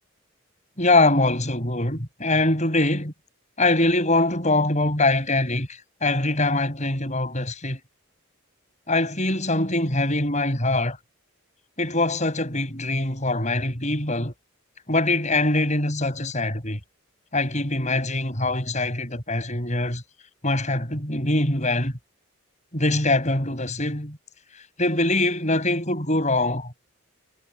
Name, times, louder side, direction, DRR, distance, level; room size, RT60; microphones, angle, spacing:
voice 1, 0.8-3.1 3.6-7.8 8.9-11.0 11.8-14.3 14.9-16.8 17.3-20.0 20.4-21.9 22.7-24.2 24.8-26.7, left 2 dB, 35° left, 6.9 m, -23 dB
head